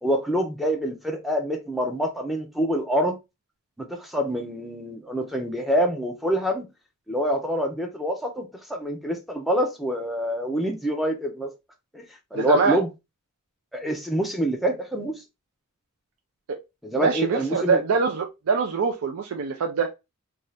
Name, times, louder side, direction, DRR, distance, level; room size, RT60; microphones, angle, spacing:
voice 1, 0.0-3.1 3.8-6.7 7.1-11.5 11.9-12.0 12.3-12.9 13.7-15.2 16.8-17.8, equal, ahead, 0.5 m, -26 dB
voice 2, 12.3-12.8 16.5-16.6 17.0-19.9, right 5 dB, 70° right, 0.4 m, -24 dB
2.7 x 2.4 x 3.1 m
head